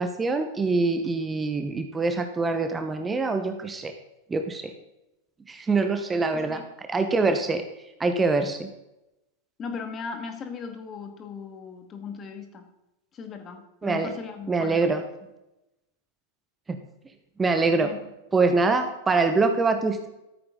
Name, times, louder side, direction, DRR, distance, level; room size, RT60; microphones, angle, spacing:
voice 1, 0.0-3.9 4.3-4.7 5.5-7.6 8.0-8.7 13.8-14.1 14.5-15.0 16.7-16.8 17.4-17.9 18.3-20.1, right 3 dB, 15° right, 7 dB, 1.3 m, -24 dB
voice 2, 6.3-6.7 9.6-12.6 13.1-15.0 17.8-18.0, left 5 dB, 25° left, 6 dB, 2.2 m, -38 dB
14.0 x 14.0 x 4.0 m, 0.92 s
figure-of-eight pair, 90°, 0 cm